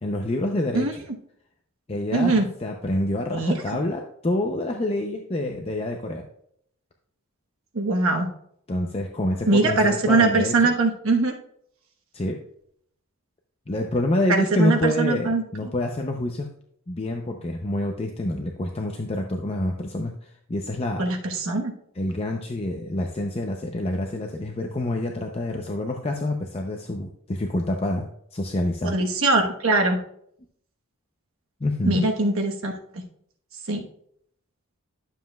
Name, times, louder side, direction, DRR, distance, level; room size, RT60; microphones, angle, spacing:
voice 1, 0.0-0.9 1.9-6.2 8.7-10.5 12.1-12.4 13.7-16.5 16.9-21.1 22.0-28.9 31.6-32.0, left 1 dB, 25° left, 2 dB, 0.5 m, -27 dB
voice 2, 2.1-2.5 3.3-3.8 7.7-8.3 9.5-11.3 14.3-15.7 21.0-21.7 28.8-30.0 31.8-32.8 33.7-33.8, right 3 dB, 70° right, 3 dB, 1.2 m, -22 dB
11.5 x 7.3 x 2.3 m, 0.68 s
head